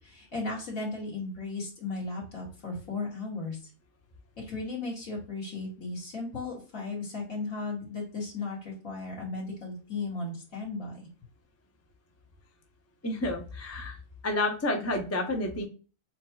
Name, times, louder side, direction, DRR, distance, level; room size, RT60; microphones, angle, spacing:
voice 1, 0.0-3.6 4.4-11.0, left 3 dB, 60° left, -2 dB, 2.4 m, -36 dB
voice 2, 13.0-14.0 14.2-15.7, left 2 dB, 25° left, 3 dB, 0.3 m, -30 dB
7.3 x 3.0 x 2.3 m, 0.37 s
omnidirectional pair, 1.6 m